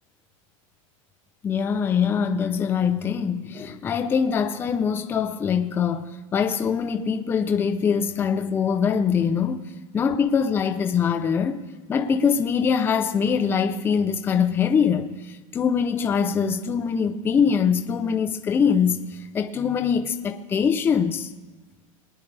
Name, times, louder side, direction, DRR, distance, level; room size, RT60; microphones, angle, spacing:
voice 1, 1.4-9.6 9.9-11.6 11.9-21.3, left 6 dB, 10° left, 0.5 m, -23 dB
22.0 x 10.0 x 3.3 m
supercardioid pair, 165°, 17 cm